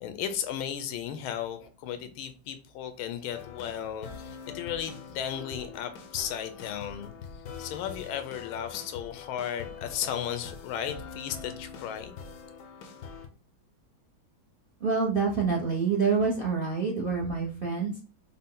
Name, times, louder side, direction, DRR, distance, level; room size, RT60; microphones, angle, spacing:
voice 1, 0.0-12.1, left 9 dB, 90° left, 1.5 m, -35 dB
sound 1, 3.3-13.3, left 6 dB, 70° left, 0.8 m, -44 dB
voice 2, 14.8-18.0, right 5 dB, 60° right, 0.5 m, -27 dB
5.4 x 2.2 x 3.7 m
omnidirectional pair, 2.2 m